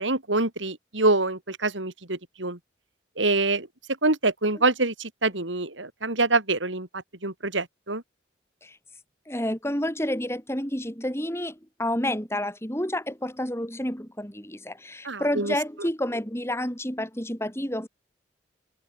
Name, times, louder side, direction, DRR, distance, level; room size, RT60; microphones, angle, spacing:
voice 1, 0.0-2.6 3.2-3.7 4.0-8.0 15.1-15.5, right 2 dB, 80° right, 4.0 m, -25 dB
voice 2, 9.3-17.9, left 1 dB, 15° left, 5.5 m, -29 dB
head